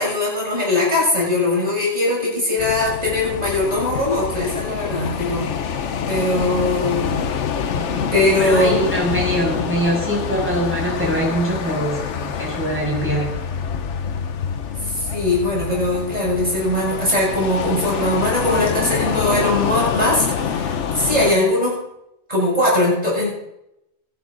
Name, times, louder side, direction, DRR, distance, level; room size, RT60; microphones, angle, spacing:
voice 1, 0.0-5.5 6.1-7.2 8.1-8.8 14.9-21.8 22.3-23.3, left 1 dB, 35° right, -4 dB, 7.0 m, -20 dB
sound 1, 2.6-21.4, left 7 dB, 85° left, 1.3 m, -26 dB
voice 2, 7.7-8.1 8.4-13.3, right 1 dB, 10° right, -4 dB, 6.9 m, -23 dB
23.5 x 11.0 x 3.9 m, 0.84 s
omnidirectional pair, 1.2 m